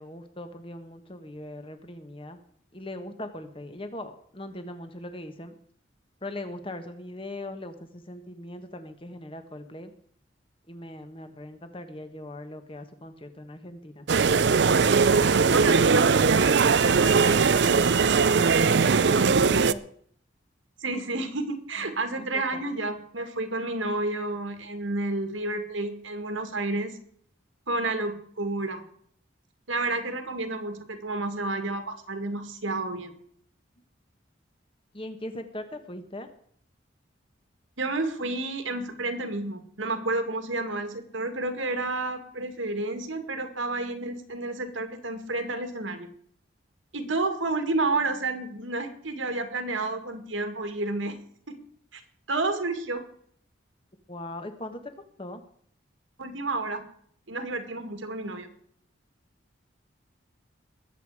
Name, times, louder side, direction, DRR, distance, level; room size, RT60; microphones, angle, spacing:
voice 1, 0.0-2.4 2.7-5.6 6.2-9.9 10.7-14.1 18.6-19.8 22.3-22.8 34.9-36.3 54.1-54.9 55.2-55.4, left 1 dB, 25° left, 8 dB, 1.4 m, -40 dB
sound 1, 14.1-19.7, right 5 dB, 60° right, 0.5 m, -20 dB
voice 2, 15.5-17.4 20.8-27.0 27.7-28.8 29.7-33.2 37.8-46.1 46.9-51.1 51.5-51.6 51.9-52.0 52.3-53.0 56.2-56.8 57.3-58.5, right 2 dB, 80° right, 7 dB, 2.1 m, -30 dB
21.0 x 8.1 x 4.9 m, 0.62 s
head